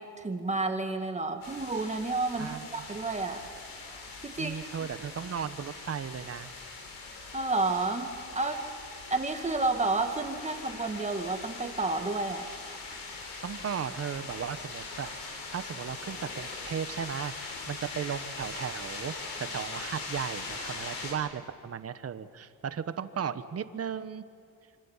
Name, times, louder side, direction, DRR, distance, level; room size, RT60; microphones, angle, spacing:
voice 1, 0.0-3.4 4.2-4.6 7.3-8.7 9.1-12.5, right 3 dB, 20° right, 5 dB, 2.2 m, -30 dB
sound 1, 1.4-21.1, left 3 dB, 85° left, 5.9 m, -41 dB
voice 2, 2.4-2.9 4.4-6.5 13.4-15.1 15.5-19.1 19.4-24.2, right 7 dB, 40° right, 12 dB, 1.2 m, -36 dB
27.0 x 25.5 x 7.4 m, 2.5 s
cardioid pair, 120°, 37 cm